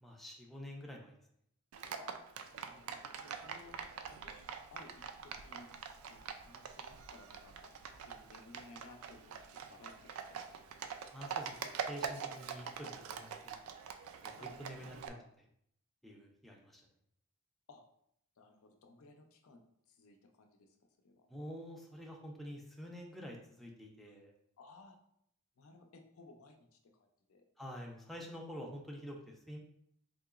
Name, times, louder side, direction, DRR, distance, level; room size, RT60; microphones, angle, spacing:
voice 1, 0.0-1.1 11.1-13.8 14.2-15.1 16.0-16.8 21.3-24.3 27.6-29.6, equal, ahead, -1 dB, 0.4 m, -48 dB
Livestock farm animals working animals, 1.7-15.1, right 6 dB, 80° right, 0.3 m, -45 dB
voice 2, 2.5-3.8 4.1-4.3 4.7-5.7 6.1-7.7 8.0-10.7 14.4-14.5 14.8-15.3 17.7-17.8 18.4-20.8 21.0-21.3 24.0-24.1 24.6-25.0 25.6-27.4, left 3 dB, 85° left, 4 dB, 0.5 m, -59 dB
3.8 x 2.8 x 2.4 m, 0.71 s
head